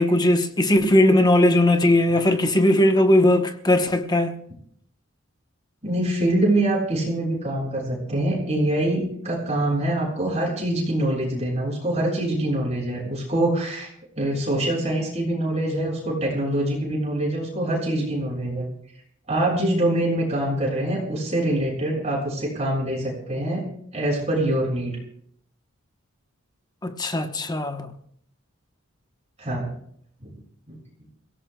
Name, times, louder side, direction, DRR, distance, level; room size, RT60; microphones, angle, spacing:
voice 1, 0.0-4.3 26.8-27.9, left 1 dB, 20° left, 1.0 m, -19 dB
voice 2, 5.8-13.9 14.2-18.7 19.3-23.6 23.9-25.0 29.4-29.7 30.7-30.8, right 1 dB, 35° right, 6.9 m, -24 dB
28.5 x 17.5 x 2.3 m
head